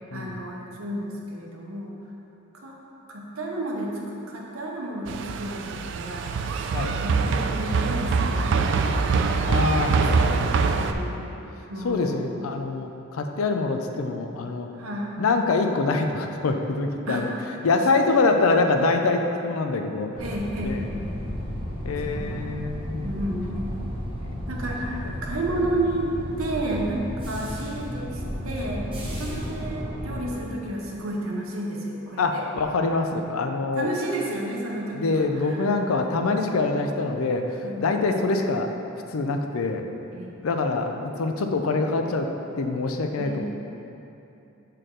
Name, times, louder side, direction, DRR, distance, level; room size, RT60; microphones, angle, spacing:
voice 1, 0.1-2.0 2.5-2.8 3.1-11.2 11.7-12.5 14.7-15.1 17.1-17.3 20.2-20.8 22.0-22.4 23.0-23.7 24.5-26.1 26.4-28.8 29.1-32.5 33.7-35.7 37.6-37.8 40.1-40.3 43.2-43.4, right 1 dB, 85° right, -2 dB, 0.8 m, -32 dB
sound 1, 5.1-10.9, right 4 dB, 60° right, 0.3 m, -24 dB
voice 2, 9.5-11.3 11.8-14.7 15.2-17.3 17.6-20.2 20.6-20.9 21.8-23.1 24.2-24.3 29.2-29.4 32.2-33.9 34.9-38.7 39.1-39.8 40.4-42.3 42.6-43.5, left 3 dB, 90° left, 5 dB, 0.5 m, -25 dB
sound 2, 20.2-30.3, equal, 25° right, 1.0 m, -33 dB
6.4 x 4.5 x 3.7 m, 2.9 s
head